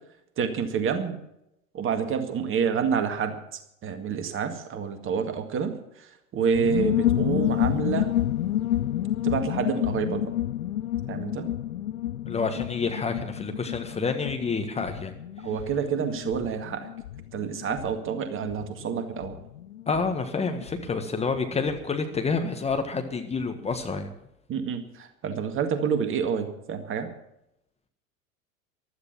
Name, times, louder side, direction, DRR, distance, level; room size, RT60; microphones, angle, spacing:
voice 1, 0.4-1.2 1.7-8.1 9.2-10.3 11.1-11.5 15.4-16.9 17.3-19.4 24.5-27.1, right 6 dB, 30° right, 8 dB, 2.0 m, -28 dB
sound 1, 6.5-22.8 23.1-23.2 23.4-23.8, left 12 dB, 80° left, 0.5 m, -30 dB
voice 2, 12.2-15.1 19.9-24.1, left 4 dB, 15° left, 5 dB, 1.6 m, -28 dB
15.0 x 12.5 x 5.9 m, 0.82 s
figure-of-eight pair, 85°, 42 cm